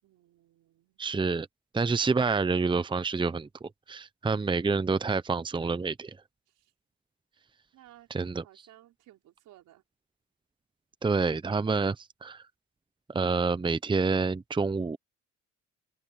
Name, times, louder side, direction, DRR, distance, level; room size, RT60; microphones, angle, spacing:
voice 1, 0.0-1.0 6.5-6.7 7.7-8.1 8.4-9.8, right 13 dB, 85° right, 5.4 m, -57 dB
voice 2, 1.0-1.5 1.7-6.2 8.1-8.4 11.0-12.4 13.1-15.0, right 4 dB, 15° right, 0.8 m, -28 dB
open air
cardioid pair, 90°, 30 cm